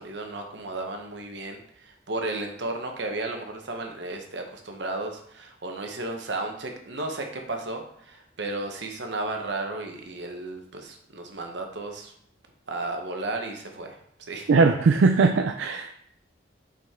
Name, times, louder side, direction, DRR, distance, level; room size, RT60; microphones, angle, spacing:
voice 1, 0.0-12.1 12.7-14.0 14.3-14.5, right 2 dB, 70° right, 3 dB, 1.0 m, -34 dB
voice 2, 14.5-15.9, right 4 dB, 85° right, 6 dB, 0.4 m, -20 dB
5.3 x 5.1 x 3.7 m, 0.66 s
head